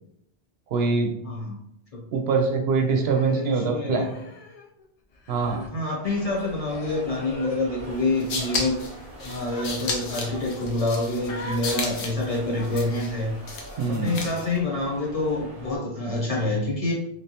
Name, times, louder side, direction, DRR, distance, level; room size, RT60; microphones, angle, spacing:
voice 1, 0.7-1.1 2.1-4.1 5.3-5.7 13.8-14.2, right 4 dB, 75° right, 4 dB, 0.8 m, -23 dB
voice 2, 1.2-1.6 1.9-2.0 3.3-4.1 5.5-8.8 9.2-13.3 13.8-16.9, left 2 dB, 35° left, -4 dB, 0.9 m, -27 dB
Human voice, 3.0-4.8 5.1-5.7 6.4-7.6 8.3-8.6 9.5-9.7 10.0-10.2 11.2-11.7 12.6-13.1 14.2-14.5, left 2 dB, 55° left, 0.4 m, -41 dB
sound 1, 6.0-15.8, right 1 dB, 40° right, 0.9 m, -44 dB
sound 2, 8.0-14.6, left 3 dB, 85° left, 1.0 m, -34 dB
3.2 x 3.1 x 2.8 m, 0.77 s
omnidirectional pair, 1.1 m